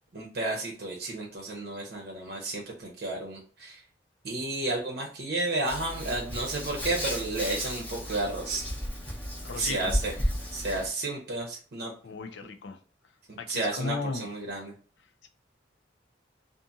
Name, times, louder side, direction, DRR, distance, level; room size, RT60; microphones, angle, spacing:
voice 1, 0.1-3.8 4.2-8.6 9.5-10.1 10.5-11.9 12.4-12.5 13.3-14.7, right 2 dB, 55° right, 0.6 m, -32 dB
Hands, 5.7-10.9, equal, 10° left, 0.7 m, -34 dB
voice 2, 9.4-9.9 12.0-12.8 13.4-14.3 15.2-15.3, left 3 dB, 70° left, 0.5 m, -35 dB
2.5 x 2.5 x 2.6 m
head